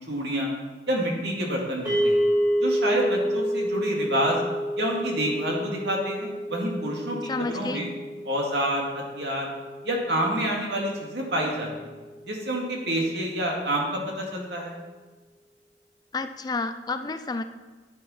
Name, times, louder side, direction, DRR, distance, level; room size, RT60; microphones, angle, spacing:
voice 1, 0.1-0.5 0.9-2.3 2.6-4.4 4.8-7.2 7.5-7.9 8.2-9.5 9.8-11.7 12.2-14.7, right 1 dB, 70° right, -1 dB, 2.3 m, -28 dB
sound 1, 1.8-12.1, equal, 25° right, 3.7 m, -29 dB
voice 2, 7.2-7.8 16.1-17.4, left 3 dB, 25° left, 10 dB, 0.4 m, -30 dB
11.5 x 9.0 x 4.3 m, 1.3 s
head